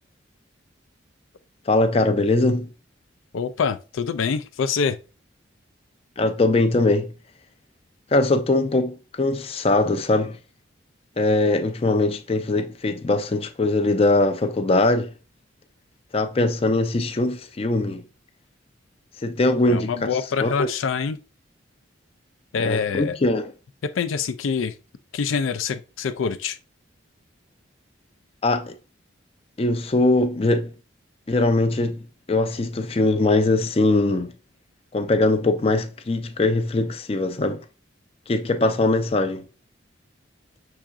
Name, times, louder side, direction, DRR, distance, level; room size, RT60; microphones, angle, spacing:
voice 1, 1.7-2.7 6.2-7.1 8.1-10.4 11.2-15.1 16.1-18.0 19.2-20.1 20.4-20.7 22.6-23.5 28.4-28.8 29.6-30.7 31.3-32.0 32.3-34.3 34.9-37.6 38.3-39.4, left 2 dB, 30° left, 0.4 m, -21 dB
voice 2, 3.3-5.0 19.7-21.2 22.5-23.2 23.8-24.7 25.1-26.6, left 6 dB, 90° left, 0.4 m, -25 dB
5.7 x 3.6 x 2.4 m
head